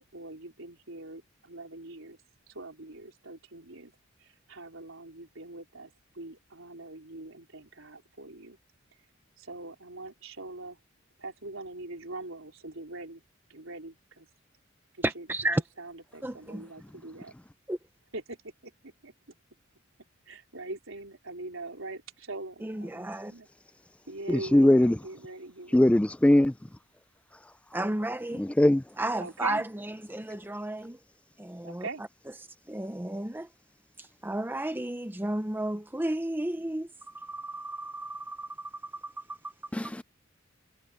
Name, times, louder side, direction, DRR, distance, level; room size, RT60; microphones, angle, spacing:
voice 1, 0.1-2.2 2.5-3.9 4.2-8.6 9.4-10.8 11.2-13.2 13.5-14.3 14.9-15.3 15.8-17.3 18.1-19.1 20.3-23.5 24.1-26.0 29.2-29.6 31.6-32.0, right 2 dB, 75° right, 4.3 m, -42 dB
voice 2, 15.0-15.6 16.2-16.7 17.7-17.8 22.6-23.3 27.7-28.4 29.0-31.0 31.4-31.9 32.7-33.5 34.0-39.4, right 1 dB, 10° right, 0.7 m, -33 dB
voice 3, 24.3-25.0 25.7-26.5 28.4-28.8 39.7-40.0, left 1 dB, 5° left, 0.3 m, -21 dB
head